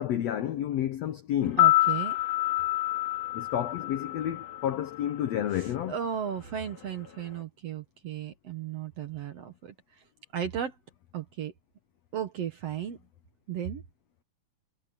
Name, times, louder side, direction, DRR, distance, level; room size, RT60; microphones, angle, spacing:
voice 1, 0.0-1.7 3.3-5.9, left 11 dB, 75° left, 1.5 m, -30 dB
sound 1, 1.4-5.6 5.9-6.0, left 17 dB, 60° left, 3.7 m, -27 dB
voice 2, 1.6-2.2 5.9-9.7 10.3-10.7 11.1-11.5 12.1-13.0 13.5-13.8, right 9 dB, 60° right, 1.9 m, -35 dB
omnidirectional pair, 4.2 m